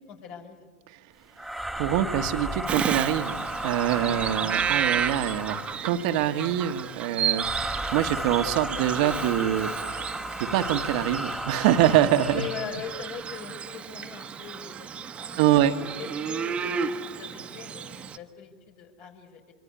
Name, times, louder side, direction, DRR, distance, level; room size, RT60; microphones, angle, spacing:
voice 1, 0.1-0.7 4.0-4.2 6.0-6.1 12.3-16.8 17.2-19.5, left 7 dB, 50° left, 4 dB, 5.3 m, -41 dB
sound 1, 1.4-5.9 7.3-12.8, right 1 dB, ahead, 2.3 m, -34 dB
voice 2, 1.8-9.7 10.4-12.5 15.4-15.8, right 11 dB, 60° right, 7 dB, 1.4 m, -25 dB
Bird vocalization bird call bird song, 2.7-18.2, right 7 dB, 25° right, 1.3 m, -33 dB
25.0 x 24.0 x 9.8 m, 1.5 s
hypercardioid pair, 110°, 4 cm